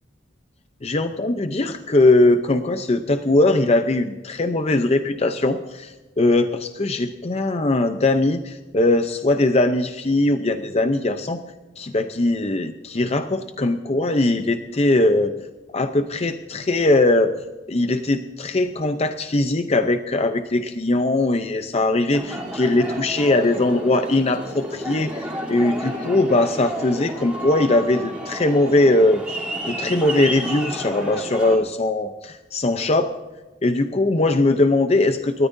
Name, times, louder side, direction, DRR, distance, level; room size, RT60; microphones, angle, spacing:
voice 1, 0.8-11.4 11.8-15.3 15.7-17.3 17.7-29.2 29.7-33.1 33.6-35.5, left 2 dB, 35° left, 8 dB, 0.6 m, -20 dB
Aircraft, 22.1-31.6, right 1 dB, 5° right, 3.2 m, -31 dB
29.0 x 13.5 x 2.7 m, 1.2 s
head